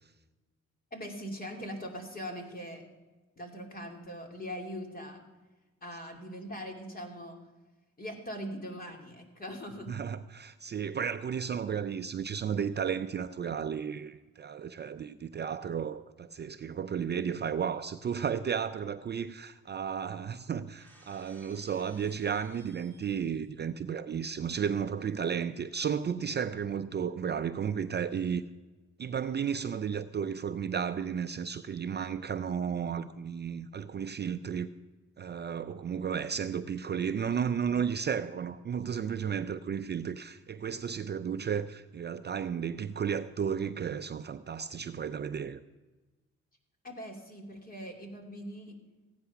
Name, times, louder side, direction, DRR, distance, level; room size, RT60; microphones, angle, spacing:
voice 1, 0.9-2.8 3.4-5.2 5.8-7.4 8.0-10.0 46.8-48.8, equal, 30° left, 2.8 m, -41 dB
voice 2, 9.9-28.4 29.0-34.7 35.2-45.6, right 7 dB, 35° right, 0.5 m, -33 dB
Shatter, 20.8-23.5, right 2 dB, 5° left, 3.9 m, -59 dB
15.5 x 9.8 x 5.8 m
cardioid pair, 90°, 30 cm